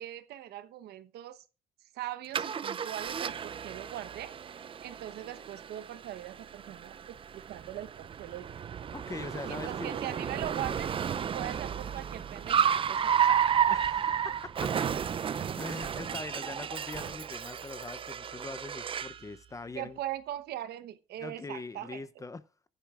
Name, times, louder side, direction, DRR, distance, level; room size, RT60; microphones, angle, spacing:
voice 1, 0.0-1.4 1.9-4.3 4.8-8.5 9.4-10.9 11.3-13.3 16.1-16.2 19.8-22.3, right 13 dB, 75° right, 1.0 m, -41 dB
Car, 2.3-19.2, right 8 dB, 30° right, 0.5 m, -32 dB
voice 2, 8.9-10.0 13.7-14.7 15.6-20.0 21.2-22.4, left 3 dB, 20° left, 0.6 m, -42 dB
15.0 x 10.5 x 2.4 m
cardioid pair, 110°, 17 cm